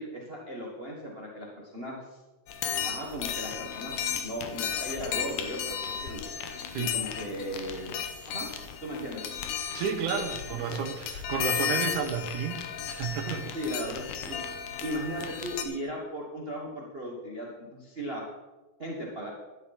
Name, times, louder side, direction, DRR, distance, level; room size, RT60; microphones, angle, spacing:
voice 1, 0.0-2.2 2.8-3.9 4.2-6.2 6.7-8.0 8.2-8.5 8.8-9.2 10.5-10.8 13.2-14.4 14.8-18.3 18.8-19.3, equal, 55° right, -2 dB, 0.6 m, -37 dB
sound 1, 2.5-15.6, left 8 dB, 75° left, 2.3 m, -34 dB
voice 2, 9.7-13.4, right 7 dB, 75° right, 7 dB, 2.3 m, -32 dB
12.0 x 11.5 x 4.2 m, 1.1 s
omnidirectional pair, 3.8 m